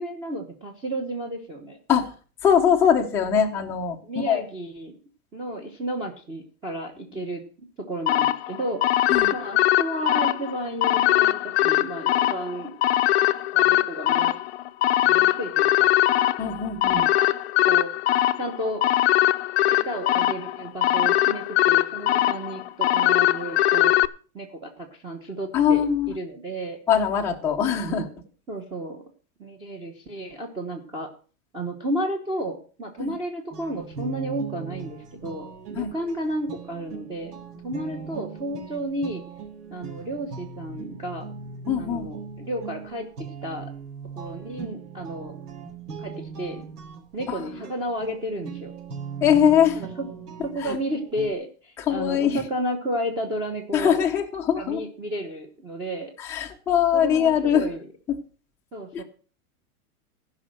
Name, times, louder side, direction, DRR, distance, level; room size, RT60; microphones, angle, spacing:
voice 1, 0.0-1.8 4.0-5.0 5.3-7.4 7.8-8.8 9.3-12.7 13.5-14.4 15.0-15.9 16.9-17.3 17.6-17.9 18.4-18.8 19.7-23.9 24.3-25.8 26.1-26.8 27.9-28.1 28.5-29.0 29.4-31.1 31.5-37.3 37.6-39.2 39.7-41.3 41.8-43.7 44.1-45.4 46.0-46.6 47.1-48.7 49.7-50.1 50.5-54.0 54.6-56.1 56.9-57.8 58.7-59.0, right 1 dB, 10° right, 2 dB, 1.0 m, -32 dB
voice 2, 2.4-4.0 4.3-4.4 9.1-9.3 16.4-17.0 25.5-26.1 26.9-28.1 33.0-33.1 35.7-35.9 41.7-42.1 47.3-47.5 49.2-49.8 50.6-50.8 51.9-52.4 53.7-54.8 56.2-57.7 58.9-59.0, left 8 dB, 5° left, -1 dB, 0.7 m, -22 dB
sound 1, 8.1-24.1, left 14 dB, 45° left, 0.7 m, -21 dB
sound 2, 33.5-51.3, right 6 dB, 85° right, 4.2 m, -39 dB
15.5 x 5.6 x 7.6 m, 0.39 s
supercardioid pair, 170°, 45 cm